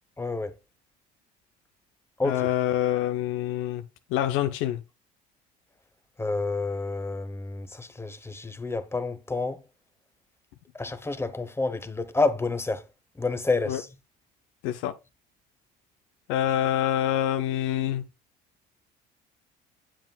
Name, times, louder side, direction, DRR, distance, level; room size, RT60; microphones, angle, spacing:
voice 1, 0.2-0.5 2.2-2.5 6.2-9.6 10.7-12.8 13.2-13.9, left 3 dB, 10° left, 0.9 m, -29 dB
voice 2, 2.2-3.8 4.1-4.8 13.7-13.8 14.6-14.9 16.3-18.0, left 12 dB, 70° left, 0.6 m, -26 dB
7.4 x 7.3 x 2.3 m
hypercardioid pair, 70°, 21 cm